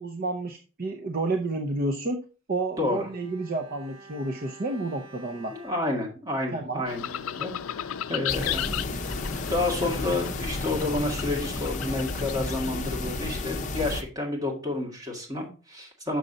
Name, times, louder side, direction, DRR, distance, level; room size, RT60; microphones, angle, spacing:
voice 1, 0.0-5.5 6.5-6.9, right 2 dB, 45° right, 4 dB, 0.6 m, -30 dB
voice 2, 2.8-3.1 5.5-7.5 7.8-8.9 9.5-16.2, left 2 dB, 15° right, -1 dB, 2.0 m, -30 dB
Bowed string instrument, 2.8-7.2 7.5-7.6, right 2 dB, 65° right, 1.5 m, -51 dB
sound 1, 6.9-12.7, left 10 dB, 75° left, 0.4 m, -35 dB
sound 2, 8.3-14.0, left 2 dB, 35° left, 0.7 m, -32 dB
6.6 x 6.3 x 3.9 m, 0.34 s
head